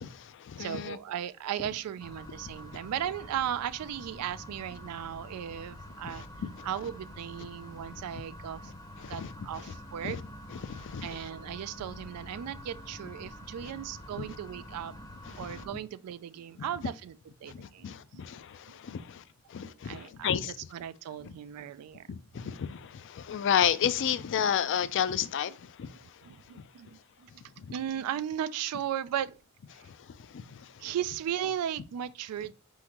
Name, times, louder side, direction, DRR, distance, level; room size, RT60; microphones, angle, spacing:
voice 1, 0.0-1.0 6.0-6.7 9.0-9.3 10.0-10.2 10.6-11.1 13.6-13.7 15.3-15.6 17.5-19.2 19.5-20.5 21.2-21.3 22.1-26.0 29.7-30.0 30.3-30.7, left 8 dB, 55° left, 0.4 m, -32 dB
voice 2, 0.6-6.2 6.6-8.7 9.1-10.2 11.0-14.9 15.4-17.2 17.4-18.2 19.7-22.5 26.2-27.4 27.7-29.4 29.7-29.9 30.8-32.5, right 10 dB, 80° right, 0.3 m, -36 dB
sound 1, 2.0-15.7, left 1 dB, 15° left, 0.7 m, -47 dB
4.2 x 3.7 x 2.9 m
head